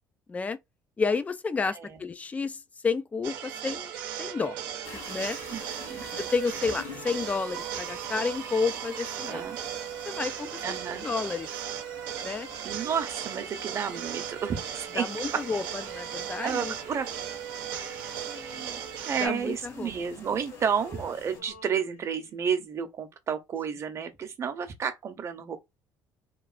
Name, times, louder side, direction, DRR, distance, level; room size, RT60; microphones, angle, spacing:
voice 1, 1.0-2.6 2.8-3.9 4.2-4.6 5.1-5.4 6.3-9.4 10.1-10.6 11.0-11.5 12.2-12.5 15.0-16.7 19.2-19.9, left 4 dB, 20° left, 0.3 m, -30 dB
voice 2, 1.7-2.0 5.5-6.0 9.3-9.6 10.6-11.1 12.6-15.1 16.4-17.1 18.2-25.6, right 7 dB, 40° right, 0.7 m, -31 dB
sound 1, 3.2-19.3, right 10 dB, 85° right, 0.7 m, -37 dB
sound 2, 4.8-21.4, left 4 dB, 40° left, 0.9 m, -48 dB
Male singing, 17.6-20.1 20.4-22.5, left 4 dB, 70° left, 0.7 m, -52 dB
3.0 x 2.4 x 2.4 m
cardioid pair, 115°, 8 cm